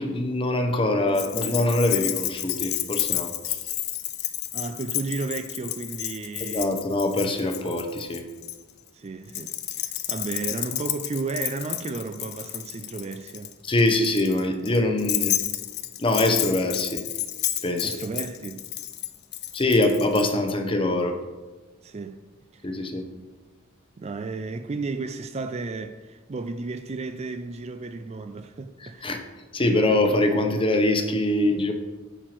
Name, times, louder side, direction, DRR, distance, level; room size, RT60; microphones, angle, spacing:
voice 1, 0.0-3.6 6.4-8.2 13.7-15.4 16.0-17.0 17.6-17.9 19.5-21.2 22.6-23.0 29.0-29.2 29.5-31.7, left 1 dB, 25° left, 0.8 m, -23 dB
Keys jangling, 1.1-8.6 9.3-20.3, left 14 dB, 50° left, 0.5 m, -31 dB
voice 2, 4.5-6.8 8.9-13.6 17.8-18.7 21.8-22.2 22.5-22.8 24.0-29.1, right 3 dB, 30° right, 0.4 m, -33 dB
9.0 x 4.5 x 6.0 m
head